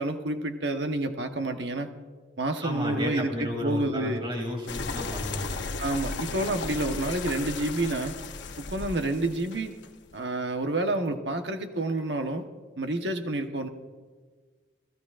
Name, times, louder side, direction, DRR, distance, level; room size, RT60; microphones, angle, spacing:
voice 1, 0.0-1.9 2.4-4.2 5.8-8.2 8.6-9.7 10.1-12.5 12.8-13.7, right 2 dB, 70° right, 6 dB, 1.2 m, -29 dB
voice 2, 2.6-5.6, equal, 25° right, 1 dB, 2.8 m, -32 dB
sound 1, 4.7-10.1, left 3 dB, 80° left, 0.9 m, -35 dB
28.5 x 16.0 x 2.5 m, 1.5 s
head